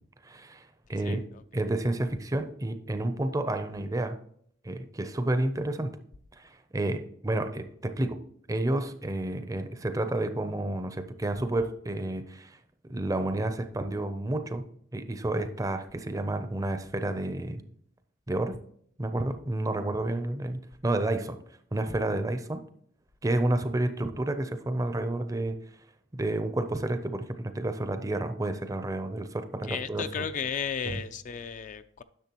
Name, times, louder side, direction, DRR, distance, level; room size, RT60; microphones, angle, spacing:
voice 1, 0.2-1.2 1.5-4.2 4.6-5.9 6.4-8.2 8.5-12.6 12.9-14.7 14.9-17.6 18.3-18.6 19.0-21.4 21.7-22.6 23.2-25.6 26.1-30.2 30.8-31.0, right 1 dB, 15° right, 0.5 m, -30 dB
voice 2, 1.0-1.4 29.7-32.0, left 7 dB, 40° left, 0.3 m, -34 dB
10.5 x 6.6 x 2.9 m
head